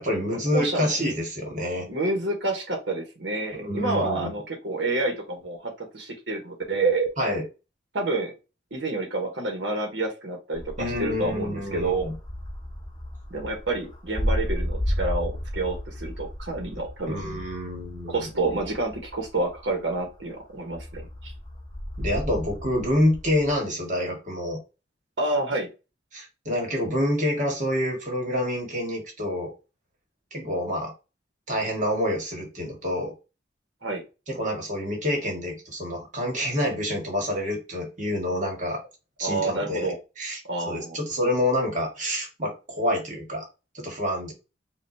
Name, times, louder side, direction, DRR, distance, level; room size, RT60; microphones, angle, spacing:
voice 1, 0.0-1.9 3.6-4.3 7.2-7.4 10.8-12.1 17.1-18.2 22.0-24.6 26.1-29.5 30.3-30.9 31.5-33.1 34.3-38.8 39.2-40.4 40.6-43.5 43.7-44.3, left 1 dB, 45° right, 1 dB, 1.7 m, -27 dB
voice 2, 0.5-0.9 1.9-7.1 7.9-8.3 8.7-12.1 13.3-17.2 18.1-21.3 25.2-25.7 33.8-34.0 39.2-40.0 40.4-41.0, right 2 dB, 75° right, 2 dB, 1.3 m, -28 dB
sound 1, 10.5-20.2 20.7-23.5, equal, 25° left, 1.1 m, -33 dB
5.5 x 2.6 x 2.8 m, 0.28 s
head